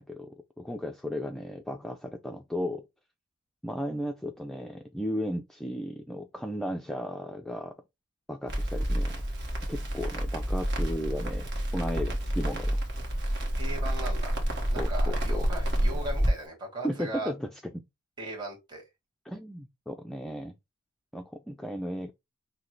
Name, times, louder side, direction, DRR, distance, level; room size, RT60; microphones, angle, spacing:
voice 1, 0.0-2.9 3.6-7.7 8.3-9.2 9.7-12.8 14.8-15.5 16.8-17.8 19.3-20.5 21.1-22.1, equal, ahead, 0.4 m, -35 dB
Crackle, 8.5-16.3, equal, 50° right, 1.4 m, -29 dB
voice 2, 13.6-14.3 14.7-17.3 18.2-18.8, right 2 dB, 20° right, 1.8 m, -38 dB
6.0 x 2.2 x 3.2 m
head